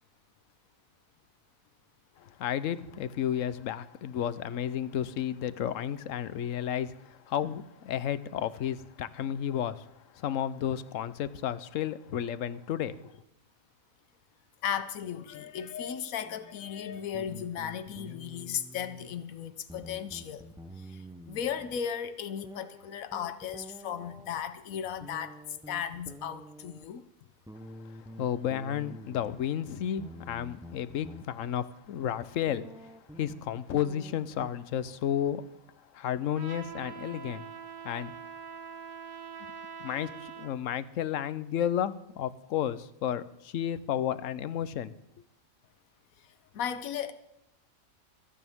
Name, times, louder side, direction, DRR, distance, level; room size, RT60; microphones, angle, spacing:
voice 1, 2.2-9.8 10.1-13.0 28.2-35.4 35.9-37.4 37.8-38.1 39.8-44.9, left 10 dB, 75° left, 1.0 m, -32 dB
voice 2, 14.6-20.5 20.8-25.4 25.7-27.0 46.5-47.1, left 8 dB, 90° left, 1.2 m, -36 dB
sound 1, 16.2-16.6 17.1-19.3 19.6-21.9 22.4-24.4 25.0-26.9 27.5-29.4 30.0-31.2 31.8-31.9 32.5-34.5, equal, 5° right, 0.4 m, -48 dB
Trumpet, 36.3-40.6, right 7 dB, 90° right, 1.7 m, -44 dB
26.0 x 9.1 x 3.6 m
omnidirectional pair, 1.4 m